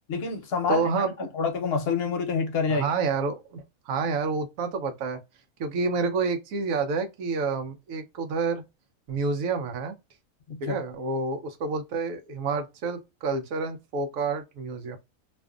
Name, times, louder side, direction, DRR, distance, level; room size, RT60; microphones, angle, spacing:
voice 1, 0.1-1.0 1.3-2.9 10.5-10.8, left 5 dB, 55° left, 0.8 m, -27 dB
voice 2, 0.7-1.1 2.7-5.2 5.6-8.6 9.1-9.9 10.6-15.0, right 4 dB, 85° right, 1.0 m, -29 dB
2.5 x 2.4 x 2.3 m
omnidirectional pair, 1.4 m